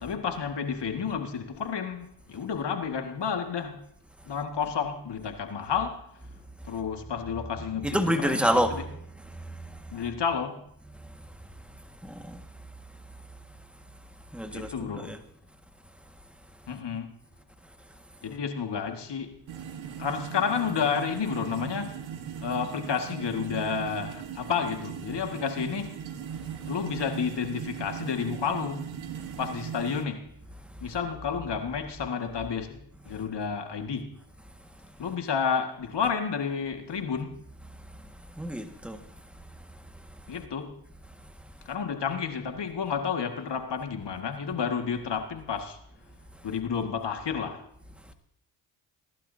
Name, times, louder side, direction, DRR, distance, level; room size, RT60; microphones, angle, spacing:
voice 1, 0.0-3.8 4.2-6.1 6.6-8.8 9.9-10.6 14.5-15.1 16.7-17.1 18.2-19.4 20.0-22.0 22.4-26.0 26.7-28.9 29.4-30.3 30.8-34.1 35.0-37.4 40.3-40.7 41.7-45.8 46.4-47.7, left 6 dB, 55° left, 2.0 m, -31 dB
voice 2, 7.8-8.8 9.4-9.8 12.0-12.4 14.3-14.7 15.0-15.2 38.4-39.0, equal, ahead, 1.7 m, -28 dB
sound 1, 19.5-30.0, right 8 dB, 70° right, 1.5 m, -38 dB
19.0 x 11.5 x 2.8 m
supercardioid pair, 50°, 49 cm